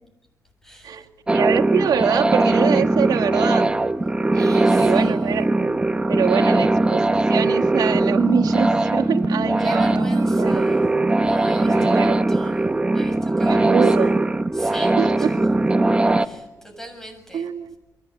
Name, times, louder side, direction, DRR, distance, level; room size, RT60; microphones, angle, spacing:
voice 1, 0.6-1.1 4.3-5.4 9.6-10.9 11.2-14.1 14.5-15.4 16.2-17.5, right 1 dB, 5° left, 6 dB, 6.9 m, -40 dB
sound 1, 1.3-16.3, right 2 dB, 15° right, 1.0 m, -20 dB
voice 2, 1.3-3.7 4.3-5.5 6.1-10.6 11.6-12.2 13.4-14.1 15.0-15.3 17.3-17.8, right 8 dB, 90° right, 3 dB, 1.9 m, -25 dB
29.5 x 23.5 x 8.6 m, 1.0 s
wide cardioid pair, 135°, 7 cm